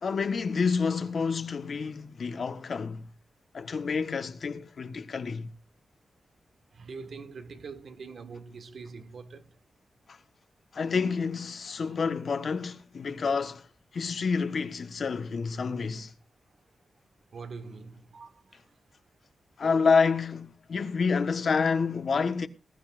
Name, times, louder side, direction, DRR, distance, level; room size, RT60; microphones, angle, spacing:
voice 1, 0.0-3.1 3.5-5.5 10.1-10.2 10.7-13.7 13.9-16.1 19.6-22.5, left 5 dB, 60° left, 1.3 m, -28 dB
voice 2, 6.7-9.5 11.9-12.0 17.3-18.6, right 4 dB, 70° right, 1.6 m, -43 dB
20.0 x 12.5 x 2.5 m
wide cardioid pair, 115°, 0 cm